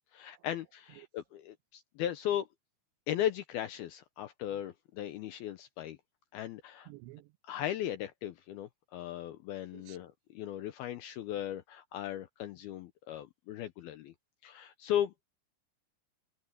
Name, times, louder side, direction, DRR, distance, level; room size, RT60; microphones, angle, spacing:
voice 1, 0.1-2.5 3.1-6.0 6.3-6.9 7.5-14.1 14.4-15.2, left 11 dB, 80° left, 2.3 m, -37 dB
voice 2, 6.9-7.3 9.7-10.0, right 19 dB, 80° right, 2.8 m, -51 dB
omnidirectional pair, 5.2 m